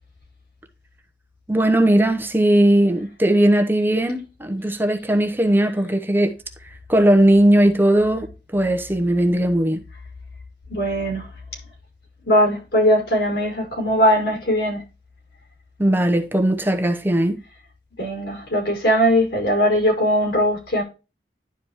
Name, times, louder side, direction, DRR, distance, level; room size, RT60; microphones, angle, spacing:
voice 1, 1.5-6.3 6.9-8.3 8.5-9.8 15.8-17.4, right 1 dB, 10° right, 1.0 m, -18 dB
voice 2, 10.7-11.3 12.2-14.8 18.0-20.8, equal, 65° left, 5.2 m, -20 dB
11.5 x 5.2 x 3.0 m
head